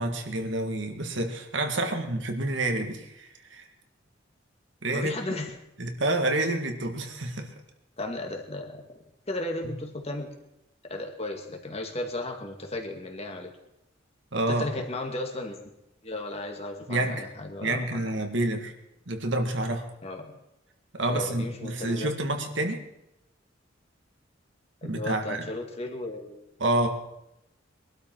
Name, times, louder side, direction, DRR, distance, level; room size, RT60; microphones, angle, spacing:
voice 1, 0.0-3.7 4.8-5.1 5.8-7.5 14.3-14.7 16.9-17.3 17.6-18.7 19.1-19.9 20.9-22.8 24.8-25.5 26.6-26.9, right 2 dB, 65° right, 4 dB, 1.9 m, -28 dB
voice 2, 4.9-5.5 8.0-8.8 9.3-10.3 10.8-13.5 14.5-15.6 16.0-18.0 20.0-20.3 21.1-22.1 24.8-26.4, left 2 dB, 35° left, 3 dB, 2.1 m, -35 dB
22.5 x 12.5 x 4.6 m, 0.86 s
head